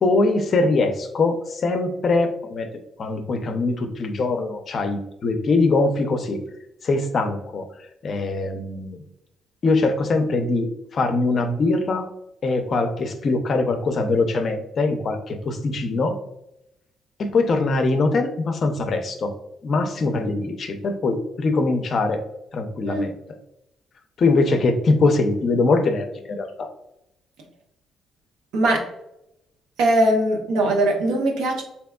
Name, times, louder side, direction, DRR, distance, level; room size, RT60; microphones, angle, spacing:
voice 1, 0.0-2.7 3.0-6.4 6.8-7.7 8.0-9.0 9.6-12.1 12.4-16.2 17.2-19.3 19.6-22.2 22.5-23.1 24.2-26.7, left 3 dB, 50° left, 6 dB, 0.5 m, -22 dB
voice 2, 29.8-31.6, right 1 dB, 90° right, 2 dB, 0.7 m, -20 dB
3.4 x 2.9 x 2.2 m, 0.82 s
cardioid pair, 90°, 0 cm